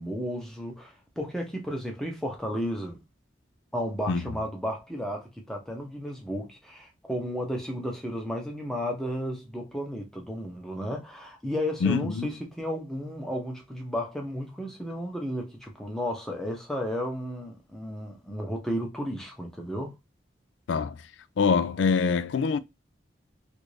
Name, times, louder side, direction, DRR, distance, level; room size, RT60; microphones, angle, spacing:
voice 1, 0.0-3.0 3.7-19.9, equal, 5° left, 0.7 m, -33 dB
voice 2, 11.8-12.3 20.7-20.9 21.4-22.6, left 5 dB, 90° left, 0.4 m, -24 dB
3.1 x 2.6 x 3.2 m
head